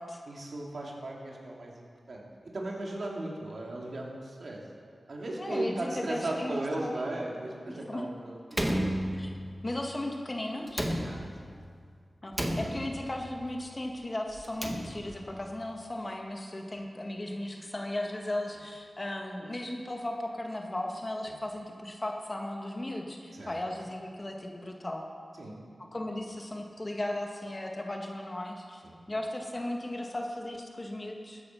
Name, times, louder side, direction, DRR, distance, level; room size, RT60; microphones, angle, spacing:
voice 1, 0.3-2.3 2.5-4.6 5.1-8.7 11.0-11.6 16.7-16.9 21.3-21.4 23.3-23.6 25.4-25.6 28.8-29.0, right 2 dB, 65° right, -2 dB, 2.7 m, -37 dB
voice 2, 5.4-6.9 7.7-8.0 9.1-9.3 9.6-10.9 12.2-25.1 25.9-28.8 29.1-31.4, left 1 dB, 35° left, 1 dB, 1.9 m, -36 dB
Slam, 8.5-9.6 10.7-11.6 12.3-13.2 14.3-15.3, equal, 15° right, 1.6 m, -32 dB
14.0 x 9.6 x 5.8 m, 2.1 s
cardioid pair, 45°, 0 cm